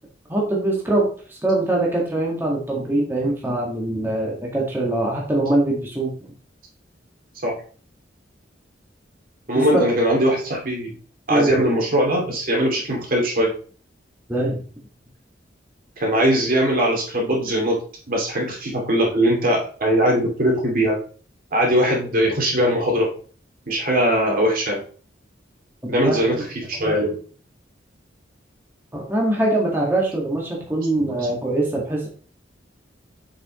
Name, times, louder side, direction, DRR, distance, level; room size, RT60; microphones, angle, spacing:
voice 1, 0.3-6.1 9.7-9.9 11.3-11.6 14.3-14.6 25.9-26.4 28.9-32.1, right 2 dB, 10° right, -3 dB, 1.8 m, -23 dB
voice 2, 9.5-10.9 11.3-13.5 16.0-17.8 18.1-21.0 21.5-23.1 23.7-24.8 25.9-27.2 31.0-31.3, equal, 50° right, -1 dB, 2.6 m, -20 dB
7.2 x 6.1 x 3.1 m, 0.40 s
head